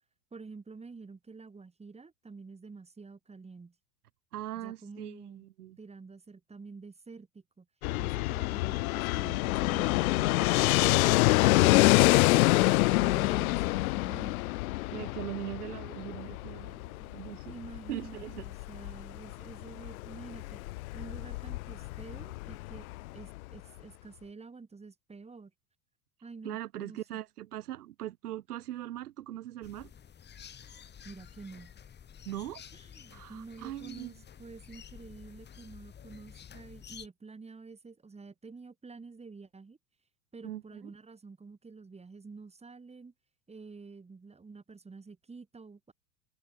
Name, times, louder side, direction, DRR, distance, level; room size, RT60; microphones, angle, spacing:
voice 1, 0.3-3.7 4.5-5.4 5.8-7.7 8.0-12.1 12.6-14.5 17.5-20.6 20.9-22.9 23.1-25.5 26.2-27.2 31.0-31.7 32.7-39.8 40.3-43.1 43.5-45.9, right 4 dB, 15° right, 2.3 m, -48 dB
voice 2, 4.3-5.8 14.9-17.5 17.9-18.5 26.4-29.9 32.2-32.6 33.1-34.1 40.4-40.9, right 13 dB, 75° right, 3.1 m, -40 dB
Fixed-wing aircraft airplane, 7.8-23.5, left 20 dB, 65° left, 0.5 m, -27 dB
sound 1, 29.6-37.1, left 8 dB, 20° left, 1.4 m, -51 dB
hypercardioid pair, 85°, 46 cm